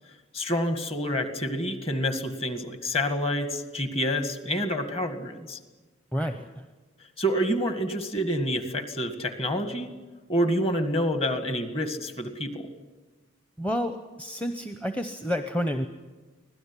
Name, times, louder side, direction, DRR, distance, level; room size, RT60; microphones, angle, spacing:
voice 1, 0.3-5.6 7.2-9.9 10.3-12.7, equal, 30° left, 8 dB, 2.0 m, -28 dB
voice 2, 6.1-6.6 13.6-15.9, equal, 5° left, 7 dB, 0.8 m, -30 dB
25.0 x 17.0 x 9.8 m, 1.3 s
head